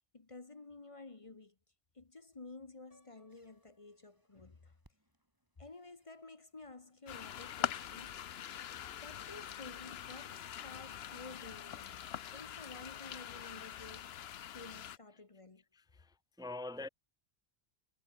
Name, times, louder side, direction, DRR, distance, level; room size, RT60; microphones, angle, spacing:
voice 1, 0.0-1.5 1.9-4.8 5.6-8.2 9.0-12.0 12.3-14.3 14.5-15.6, left 3 dB, 35° left, 1.1 m, -52 dB
Piano, 2.9-4.9, left 1 dB, 60° left, 6.8 m, -71 dB
sound 1, 3.3-9.6, equal, 20° right, 8.0 m, -77 dB
sound 2, 7.1-15.0, left 10 dB, 80° left, 1.0 m, -43 dB
voice 2, 15.7-16.9, left 2 dB, 5° right, 0.8 m, -45 dB
omnidirectional pair, 1.1 m